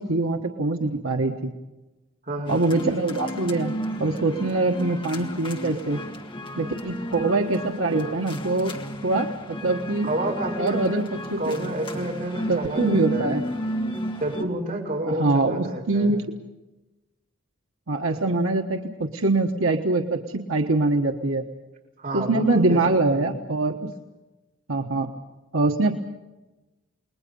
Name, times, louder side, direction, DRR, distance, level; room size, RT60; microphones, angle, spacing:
voice 1, 0.0-1.5 2.5-3.7 4.0-6.0 6.6-8.8 9.0-10.1 10.6-11.0 11.3-11.5 12.5-13.5 15.1-16.2 17.9-21.4 22.1-23.9 24.7-25.1 25.5-25.9, right 2 dB, 85° right, 3 dB, 1.4 m, -23 dB
voice 2, 2.2-2.6 10.0-11.1 11.4-13.4 14.2-16.2 22.0-22.8 23.1-23.4, right 1 dB, 45° right, -2 dB, 5.9 m, -30 dB
sound 1, 2.5-14.4, equal, 25° left, 1.7 m, -33 dB
29.5 x 21.0 x 5.5 m, 1.1 s
head